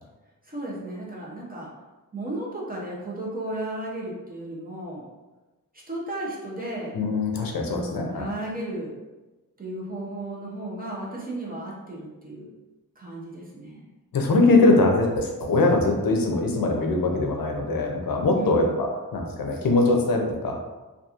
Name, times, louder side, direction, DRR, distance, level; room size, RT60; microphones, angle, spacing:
voice 1, 0.4-1.7 2.1-5.1 5.9-7.0 7.7-9.0 9.6-12.5 13.0-13.9 18.3-18.7, right 1 dB, 25° right, -4 dB, 0.6 m, -34 dB
voice 2, 6.9-8.3 14.1-20.6, left 2 dB, 70° left, 1 dB, 0.5 m, -22 dB
2.8 x 2.3 x 2.4 m, 1.1 s
wide cardioid pair, 145°, 35 cm